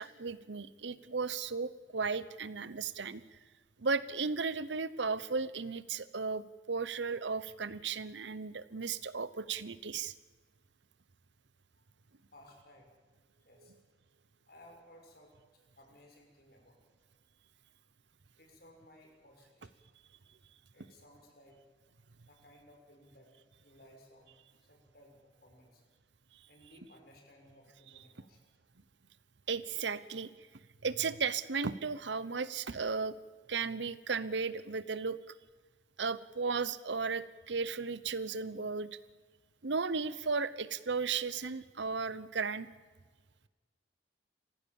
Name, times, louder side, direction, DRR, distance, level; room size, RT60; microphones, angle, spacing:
voice 1, 0.0-3.4 3.8-10.1 29.5-30.3 30.8-33.1 33.5-35.2 36.0-39.0 39.6-42.7, right 4 dB, 75° right, 16 dB, 0.9 m, -35 dB
voice 2, 12.3-12.9 13.4-13.7 14.5-16.8 18.4-19.7 20.7-21.5 22.3-23.3 23.6-24.3 24.6-25.1 25.4-25.8 26.5-28.4, left 1 dB, 55° left, 2 dB, 5.6 m, -59 dB
27.0 x 15.5 x 7.2 m, 1.3 s
head